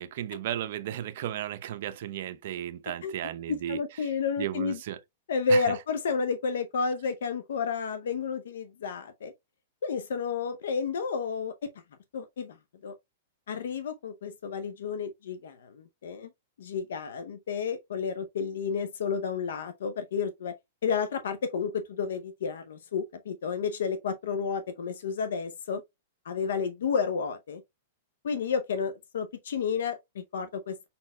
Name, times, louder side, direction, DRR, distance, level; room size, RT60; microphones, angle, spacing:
voice 1, 0.0-3.8 4.4-5.0 5.5-5.6, right 11 dB, 60° right, 0.7 m, -34 dB
voice 2, 3.5-4.8 5.3-9.3 9.8-11.5 12.1-12.6 12.8-12.9 13.5-16.3 16.6-20.6 20.8-25.8 26.2-27.6 28.2-30.8, left 5 dB, 80° left, 0.6 m, -31 dB
5.4 x 4.2 x 2.2 m
hypercardioid pair, 135°, 0 cm